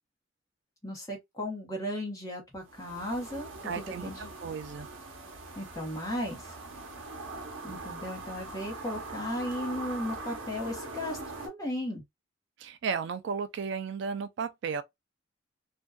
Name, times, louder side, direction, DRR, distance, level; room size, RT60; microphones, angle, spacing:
voice 1, 0.8-4.3 5.6-6.5 7.6-11.2 11.4-12.0, left 1 dB, 15° left, 0.9 m, -35 dB
sound 1, 2.7-11.5, right 3 dB, 80° right, 0.7 m, -42 dB
voice 2, 3.6-4.9 12.6-14.8, right 5 dB, 60° right, 0.3 m, -34 dB
2.6 x 2.2 x 2.2 m
head